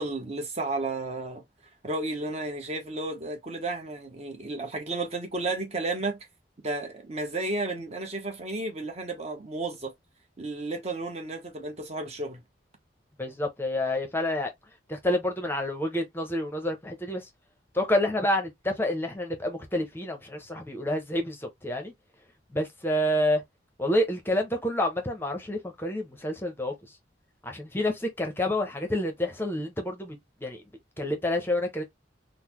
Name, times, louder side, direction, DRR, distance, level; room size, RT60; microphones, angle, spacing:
voice 1, 0.0-1.4 1.8-6.2 6.6-9.9 10.4-12.4, right 2 dB, 35° right, 0.9 m, -32 dB
voice 2, 13.2-14.5 14.9-17.3 17.7-21.9 22.5-23.4 23.8-26.7 27.4-30.6 31.0-31.8, left 1 dB, 10° left, 0.7 m, -28 dB
3.8 x 2.0 x 3.0 m
head